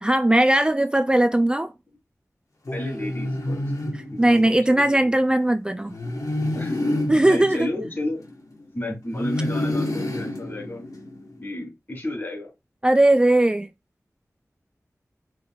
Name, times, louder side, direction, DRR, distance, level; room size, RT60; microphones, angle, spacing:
voice 1, 0.0-1.7 3.9-6.0 7.1-7.7 12.8-13.7, right 1 dB, 15° right, 0.3 m, -19 dB
sound 1, 2.6-4.8 5.9-8.6 9.1-11.4, left 1 dB, 75° left, 1.3 m, -29 dB
voice 2, 2.7-3.6 4.1-5.2 6.5-7.0 7.3-8.2 8.7-10.8 11.4-12.5, left 1 dB, 35° left, 3.1 m, -32 dB
5.1 x 3.6 x 2.3 m
wide cardioid pair, 65°, 6 cm